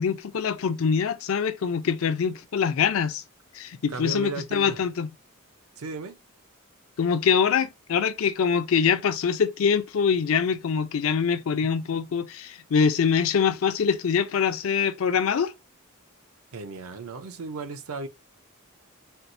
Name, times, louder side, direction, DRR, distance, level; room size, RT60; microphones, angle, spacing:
voice 1, 0.0-3.2 3.5-5.1 7.0-15.5, left 6 dB, 70° left, 0.4 m, -24 dB
voice 2, 3.9-4.8 5.8-6.2 16.5-18.1, right 3 dB, 80° right, 0.6 m, -35 dB
4.4 x 2.0 x 2.5 m
head